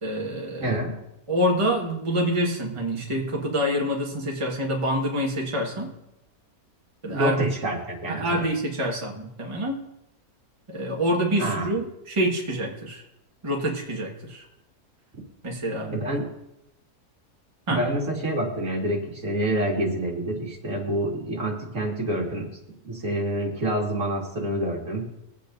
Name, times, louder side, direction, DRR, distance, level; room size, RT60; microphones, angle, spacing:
voice 1, 0.0-0.8 1.3-5.9 7.0-7.5 8.1-9.8 10.7-13.0 13.4-14.4 15.4-15.9 17.7-17.9, equal, 20° right, -2 dB, 1.5 m, -26 dB
voice 2, 0.6-0.9 7.1-8.4 11.4-11.7 15.9-16.2 17.7-22.5 22.8-25.1, right 1 dB, 55° right, -2 dB, 2.5 m, -27 dB
23.0 x 8.5 x 2.6 m, 0.86 s
omnidirectional pair, 1.6 m